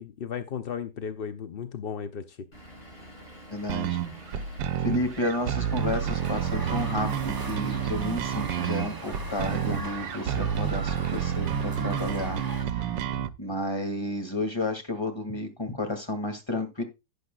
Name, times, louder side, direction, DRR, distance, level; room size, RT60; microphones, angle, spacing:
voice 1, 0.0-2.5, left 7 dB, 65° left, 10 dB, 0.5 m, -35 dB
Vehicle / Engine, 2.5-10.5, equal, 30° left, 7.3 m, -47 dB
voice 2, 3.5-4.0 4.8-12.4 12.7-13.0 13.4-16.8, left 1 dB, 15° left, 6 dB, 2.1 m, -31 dB
sound 1, 3.7-13.3, right 9 dB, 90° right, 1.4 m, -30 dB
sound 2, 5.5-12.7, right 2 dB, 25° right, 0.4 m, -40 dB
12.0 x 9.5 x 2.3 m, 0.23 s
omnidirectional pair, 1.9 m